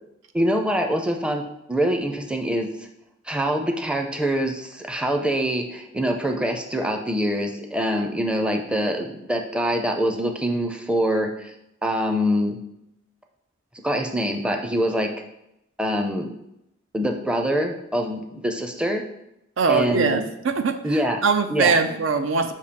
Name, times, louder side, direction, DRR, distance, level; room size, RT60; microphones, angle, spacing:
voice 1, 0.3-1.4 1.7-2.7 3.3-11.5 11.8-12.6 13.8-15.1 15.8-16.3 16.9-19.0 19.7-20.2 20.8-21.2 21.5-22.0, equal, 5° right, 3 dB, 0.5 m, -24 dB
voice 2, 19.6-20.8 21.2-22.5, right 4 dB, 75° right, 8 dB, 0.5 m, -21 dB
6.7 x 2.7 x 5.1 m, 0.84 s
head